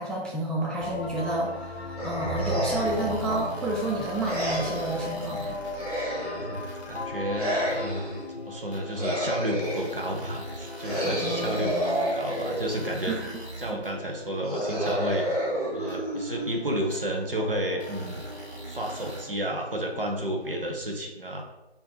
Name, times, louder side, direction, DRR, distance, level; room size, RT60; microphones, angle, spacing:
voice 1, 0.0-5.6 11.0-12.0 13.1-13.3 13.7-13.8, right 1 dB, 5° left, -3 dB, 0.3 m, -30 dB
sound 1, 0.8-20.7, left 2 dB, 75° left, 0.5 m, -38 dB
sound 2, 2.0-3.1 4.2-5.0 5.7-6.7 7.3-8.2 8.9-10.0 10.8-12.9 14.4-16.8, equal, 35° left, 0.7 m, -30 dB
sound 3, 2.8-6.0 6.5-7.0 7.7-7.8 8.7-8.8 9.6-13.9 14.9-15.0 15.9-16.0 16.9-17.0 17.8-19.2, right 2 dB, 90° right, 0.9 m, -42 dB
voice 2, 6.4-13.2 13.6-15.5 15.7-18.2 18.7-21.4, right 1 dB, 60° right, 1 dB, 0.5 m, -31 dB
2.2 x 2.1 x 2.7 m, 0.97 s
figure-of-eight pair, 175°, 33 cm